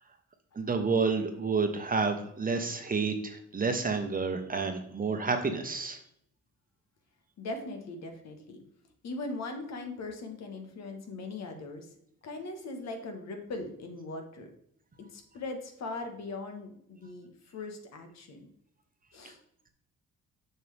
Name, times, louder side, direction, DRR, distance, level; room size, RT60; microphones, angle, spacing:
voice 1, 0.5-6.0, right 4 dB, 30° right, 6 dB, 1.0 m, -29 dB
voice 2, 7.4-8.6 9.0-11.9 12.2-14.5 15.0-17.3 17.5-18.5 19.1-19.4, left 2 dB, 60° left, 5 dB, 1.4 m, -40 dB
6.9 x 5.9 x 3.4 m, 0.70 s
cardioid pair, 90°, 30 cm